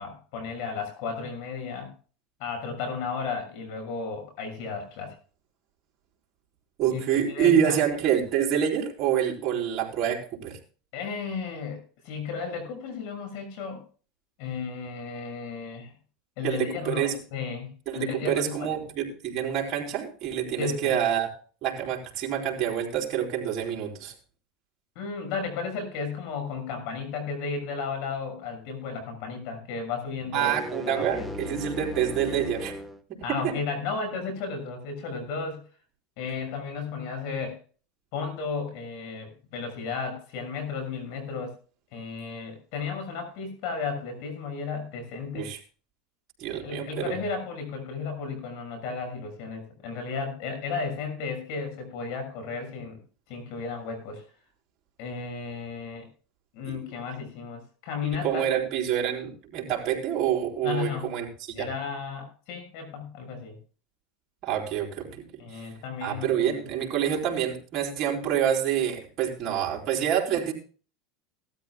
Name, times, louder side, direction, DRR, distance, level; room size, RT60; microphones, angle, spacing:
voice 1, 0.0-1.9 2.4-5.1 6.9-7.8 10.9-11.8 12.0-13.8 14.4-15.9 16.4-18.7 20.6-20.9 24.9-31.3 33.2-35.6 36.2-37.6 38.1-41.6 41.9-45.5 46.6-53.0 53.3-54.2 55.0-56.1 56.5-58.4 60.6-61.1 61.5-63.6 65.4-66.5, left 5 dB, 65° left, 6 dB, 6.4 m, -34 dB
voice 2, 6.8-10.6 16.4-17.2 17.9-21.3 21.6-24.1 30.3-32.7 33.1-33.5 45.3-45.6 46.4-47.1 56.6-56.8 58.2-61.7 64.4-65.2 65.5-65.7 66.0-70.5, right 9 dB, 45° right, 0 dB, 4.3 m, -27 dB
sound 1, 30.2-33.0, left 1 dB, 5° left, 1.3 m, -36 dB
18.5 x 13.0 x 2.3 m, 0.38 s
supercardioid pair, 125°, 0 cm